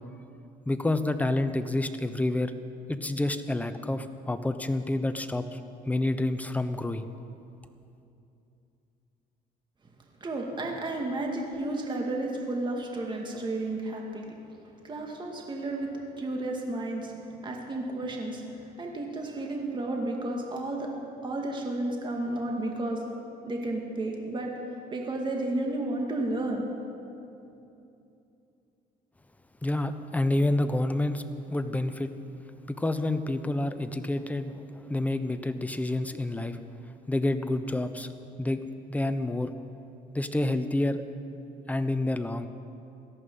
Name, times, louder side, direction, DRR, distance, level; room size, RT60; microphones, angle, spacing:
voice 1, 0.7-2.5 2.9-5.6 5.9-7.1 29.6-31.2 31.5-32.1 32.7-36.6 37.1-38.1 38.4-38.6 38.9-39.5 40.1-41.0 41.7-42.5, left 2 dB, 10° left, 9 dB, 0.8 m, -28 dB
voice 2, 10.2-14.3 14.8-15.9 16.2-17.1 17.4-20.9 21.2-23.0 23.4-24.5 24.9-26.7, right 2 dB, 30° right, 1 dB, 2.0 m, -32 dB
18.0 x 13.5 x 5.5 m, 2.8 s
cardioid pair, 110°, 17 cm